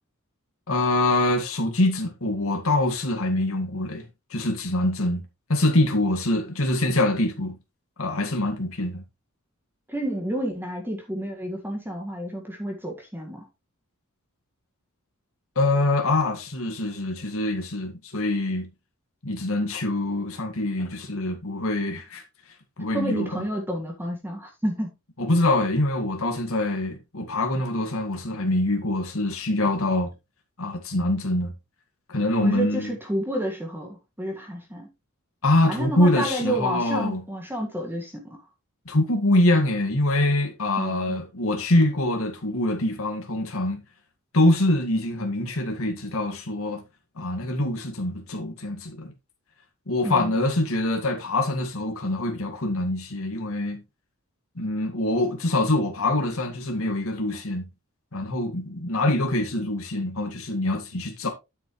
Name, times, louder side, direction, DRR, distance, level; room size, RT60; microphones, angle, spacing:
voice 1, 0.7-4.1 4.3-5.2 5.5-7.6 8.0-9.0 15.6-18.7 19.2-22.2 22.8-23.4 25.2-30.1 30.6-31.5 32.1-32.9 35.4-37.2 38.9-43.8 44.3-46.8 47.2-49.1 49.9-53.8 54.6-57.6 58.1-61.3, left 1 dB, 70° left, 2.1 m, -24 dB
voice 2, 9.9-13.5 22.9-24.9 32.4-34.9 35.7-38.5 40.8-41.2 50.0-50.5, right 1 dB, 10° right, 1.8 m, -30 dB
10.0 x 7.5 x 3.2 m
head